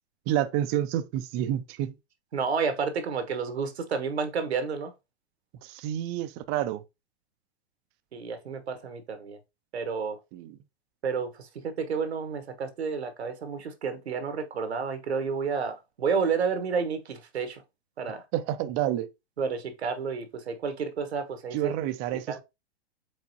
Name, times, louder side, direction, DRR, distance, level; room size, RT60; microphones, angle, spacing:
voice 1, 0.3-1.9 5.6-6.8 10.3-10.6 18.3-19.1 21.5-22.4, right 12 dB, 30° right, 0.5 m, -29 dB
voice 2, 2.3-4.9 8.1-9.4 9.7-10.2 11.0-17.6 18.0-18.2 19.4-21.7 22.1-22.4, right 5 dB, 80° right, 1.0 m, -30 dB
4.7 x 4.0 x 2.7 m
hypercardioid pair, 110°, 32 cm